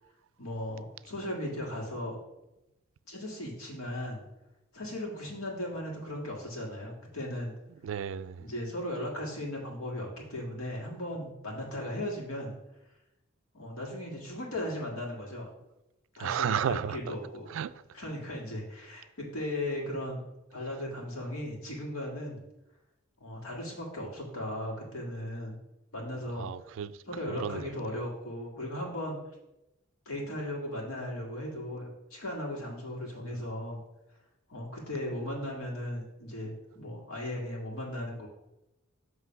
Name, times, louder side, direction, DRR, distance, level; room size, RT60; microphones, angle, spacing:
voice 1, 0.4-2.2 3.1-4.2 4.7-7.5 8.4-12.5 13.5-15.5 16.2-17.5 17.9-20.2 20.5-22.4 23.2-25.6 25.9-26.8 27.1-29.2 30.1-33.8 34.5-38.3, left 1 dB, 90° left, 1.9 m, -37 dB
voice 2, 7.8-8.5 16.2-17.1 17.5-17.8 26.4-27.0 27.3-27.7 33.2-33.4, right 8 dB, 65° right, 0.3 m, -33 dB
7.5 x 3.2 x 5.8 m
head